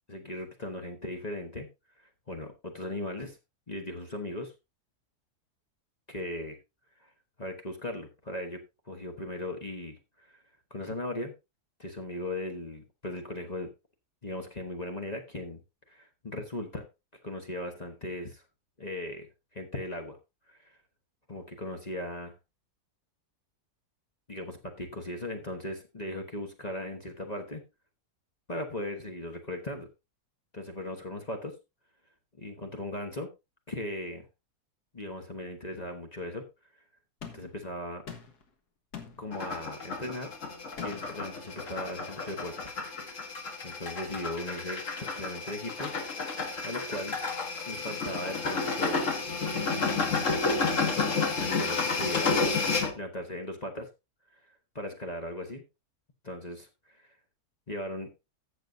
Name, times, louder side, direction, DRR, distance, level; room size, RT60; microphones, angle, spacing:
voice 1, 0.1-1.7 2.0-3.4 3.7-4.5 6.1-6.6 7.0-7.1 7.4-8.6 8.9-10.4 10.7-11.3 11.8-13.7 14.2-15.6 15.9-16.8 17.2-18.4 18.8-20.2 20.5-20.7 21.3-22.3 24.3-27.6 28.5-29.9 30.5-31.6 32.4-33.3 33.7-34.3 34.9-36.4 37.3-38.0 39.2-40.3 40.8-42.7 43.6-45.9 46.6-47.2 47.7-49.1 49.6-50.2 51.4-52.4 52.9-53.9 54.4-55.6 56.2-57.2 57.7-58.1, left 1 dB, 30° left, 4 dB, 1.2 m, -38 dB
sound 1, 37.2-37.6 38.1-38.5 38.9-39.3 40.8-41.2, left 7 dB, 80° left, 2.0 m, -43 dB
sound 2, 39.3-52.9, left 4 dB, 50° left, 1.8 m, -31 dB
15.0 x 6.7 x 2.7 m, 0.24 s
omnidirectional pair, 1.7 m